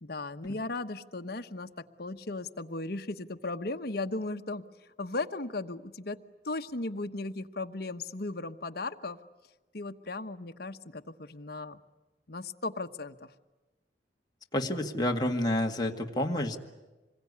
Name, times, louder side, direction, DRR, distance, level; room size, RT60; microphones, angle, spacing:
voice 1, 0.0-4.6 5.0-6.2 6.4-9.2 9.7-11.8 12.3-13.3, left 2 dB, 60° left, 7 dB, 1.2 m, -36 dB
voice 2, 14.5-16.6, left 1 dB, 25° left, 1 dB, 2.0 m, -29 dB
27.0 x 22.5 x 9.7 m, 1.2 s
head